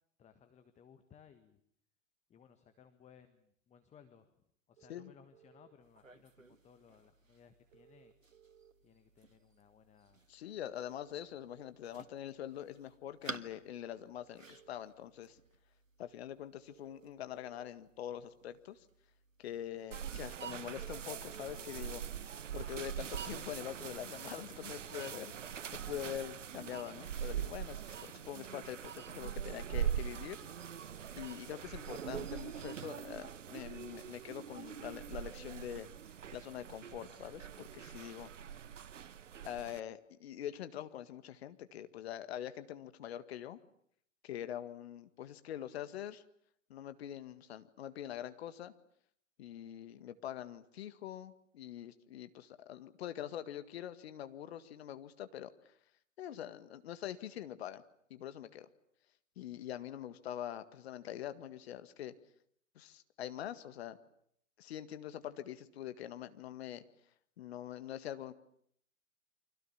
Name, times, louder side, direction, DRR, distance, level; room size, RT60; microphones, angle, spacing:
voice 1, 0.2-1.6 2.3-8.1 8.8-10.2 26.0-26.2, left 7 dB, 20° left, 9 dB, 1.6 m, -62 dB
sound 1, 4.8-5.7 7.7-8.7 10.7-11.7 13.7-14.7 16.7-17.7 19.7-20.7, right 9 dB, 45° right, 2.9 m, -63 dB
sound 2, 5.8-22.7, right 3 dB, 90° right, 1.6 m, -56 dB
voice 2, 10.3-15.4 16.0-18.9 19.4-22.0 22.5-30.4 31.2-35.9 36.3-38.3 39.4-43.6 44.2-46.2 46.7-48.7 49.4-55.7 56.2-57.8 58.1-58.7 59.4-62.1 62.8-64.0 64.6-66.8 67.4-68.3, left 11 dB, 55° left, 11 dB, 1.9 m, -44 dB
sound 3, 19.9-39.8, right 9 dB, 70° right, 1.0 m, -42 dB
29.5 x 24.5 x 7.3 m, 0.67 s
figure-of-eight pair, 105°, 38 cm